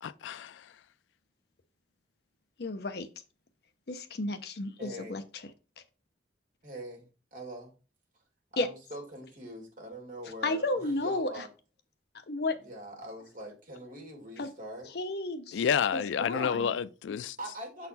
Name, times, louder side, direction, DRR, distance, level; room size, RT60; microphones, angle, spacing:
voice 1, 0.0-0.6 15.5-17.4, left 7 dB, 85° left, 0.4 m, -30 dB
voice 2, 2.6-3.1 3.9-5.2 8.6-8.7 10.4-11.5 12.3-12.6 14.4-14.5 14.9-15.7 15.9-16.7, left 2 dB, 60° left, 0.7 m, -32 dB
voice 3, 4.8-5.2 6.6-7.7 8.5-11.5 12.6-14.9 16.3-16.6 17.4-17.9, right 1 dB, 45° right, 2.1 m, -43 dB
6.7 x 4.1 x 4.1 m
head